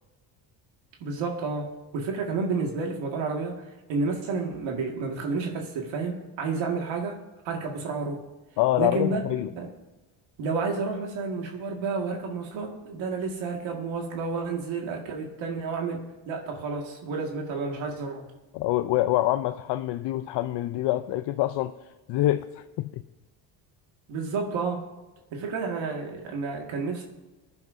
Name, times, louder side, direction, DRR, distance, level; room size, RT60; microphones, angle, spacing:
voice 1, 1.0-7.2 7.4-8.2 8.8-9.7 10.4-18.3 24.1-24.8 25.3-27.0, right 4 dB, 70° right, 1 dB, 2.0 m, -30 dB
voice 2, 8.6-9.5 18.5-21.7 22.1-22.9, left 14 dB, 65° left, 9 dB, 0.6 m, -26 dB
20.0 x 10.5 x 2.7 m, 1.1 s
cardioid pair, 105°, 47 cm